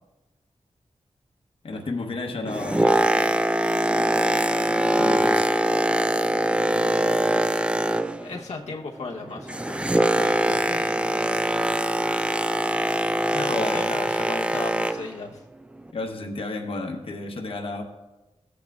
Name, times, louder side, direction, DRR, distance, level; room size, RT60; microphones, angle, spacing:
voice 1, 1.6-3.4 5.0-5.5 13.5-14.0 15.9-17.8, left 2 dB, 55° left, 2 dB, 0.9 m, -32 dB
Boat Water vehicle, 2.3-8.4 8.7-15.1 15.8-15.9, right 1 dB, 10° right, 0.3 m, -23 dB
voice 2, 8.2-11.0 13.3-15.4, left 3 dB, 80° left, -1 dB, 0.9 m, -35 dB
15.0 x 8.3 x 2.4 m, 1.1 s
wide cardioid pair, 115°, 11 cm